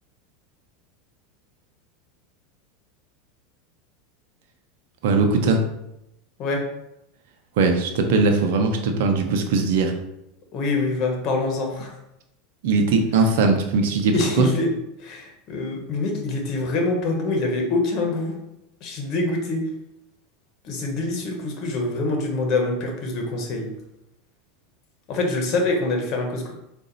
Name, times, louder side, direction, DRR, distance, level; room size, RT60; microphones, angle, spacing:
voice 1, 5.0-5.6 7.6-9.9 12.6-14.5, right 3 dB, 70° right, 4 dB, 0.7 m, -20 dB
voice 2, 10.5-11.9 14.1-14.7 15.0-18.3 18.8-19.6 20.6-23.7 25.1-26.5, left 2 dB, 50° left, 2 dB, 1.2 m, -25 dB
4.0 x 2.6 x 4.0 m, 0.85 s
supercardioid pair, 110°, 0 cm